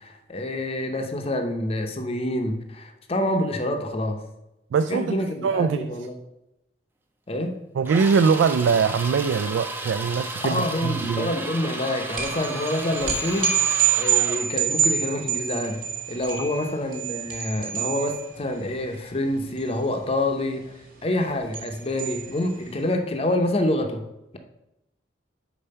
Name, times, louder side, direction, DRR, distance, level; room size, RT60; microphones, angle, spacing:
voice 1, 0.0-4.2 4.9-6.1 7.3-7.6 10.4-13.5 14.0-20.7 21.0-24.1, left 1 dB, 30° left, 5 dB, 0.6 m, -27 dB
voice 2, 4.7-5.1 5.4-5.9 7.8-11.3, right 5 dB, 80° right, 11 dB, 0.3 m, -22 dB
sound 1, 7.9-14.5, right 2 dB, 10° right, 0.5 m, -33 dB
sound 2, 12.1-22.8, right 8 dB, 50° right, 1.4 m, -27 dB
5.3 x 4.3 x 5.5 m, 0.90 s
head